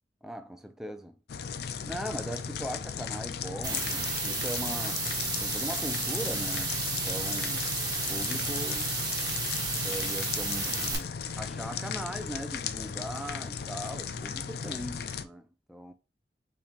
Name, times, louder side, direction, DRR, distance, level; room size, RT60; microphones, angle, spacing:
voice 1, 0.2-1.1 1.8-5.0 5.4-7.7 8.1-8.9 9.7-15.9, equal, 5° right, 0.5 m, -39 dB
sound 1, 1.3-15.2, left 6 dB, 60° left, 0.4 m, -36 dB
sound 2, 3.6-10.9, right 3 dB, 25° right, 1.4 m, -32 dB
5.8 x 3.4 x 2.5 m
head